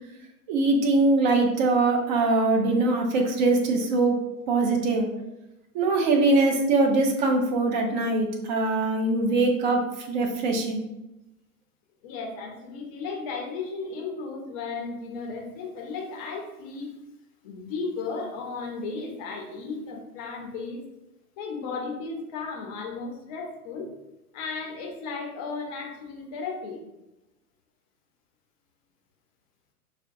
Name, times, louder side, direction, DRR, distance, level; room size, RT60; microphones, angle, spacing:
voice 1, 0.5-4.2 4.5-5.1 5.7-10.8, right 2 dB, 30° right, 2 dB, 0.6 m, -22 dB
voice 2, 12.0-16.9 17.4-20.8 21.4-23.9 24.3-26.8, left 4 dB, 25° left, 0 dB, 0.6 m, -35 dB
4.9 x 2.2 x 2.6 m, 0.96 s
figure-of-eight pair, 110°, 46 cm